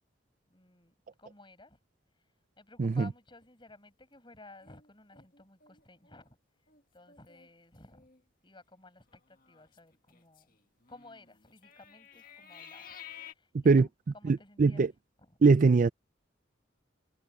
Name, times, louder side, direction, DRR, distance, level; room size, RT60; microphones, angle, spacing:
voice 1, 0.5-1.8 2.1-8.1 8.4-10.6 10.9-14.9 15.2-15.4, left 2 dB, 25° left, 6.8 m, -56 dB
sound 1, 4.6-6.3 6.7-6.8 7.1-7.5 7.9-8.2 9.1-13.3, left 9 dB, 50° left, 1.9 m, -52 dB
voice 2, 14.3-14.9 15.4-15.9, right 4 dB, 45° right, 0.4 m, -21 dB
head